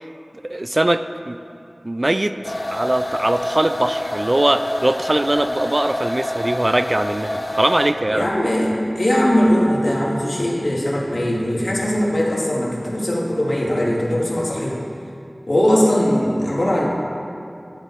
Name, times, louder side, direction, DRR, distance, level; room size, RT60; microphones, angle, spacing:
voice 1, 0.4-1.4 1.8-8.3, right 1 dB, 45° right, 10 dB, 0.4 m, -21 dB
sound 1, 2.4-8.1, left 1 dB, 45° left, 1.0 m, -27 dB
voice 2, 8.1-14.8 15.5-16.9, equal, 65° left, -3 dB, 2.2 m, -20 dB
13.0 x 10.5 x 4.2 m, 2.6 s
wide cardioid pair, 45°, 0 cm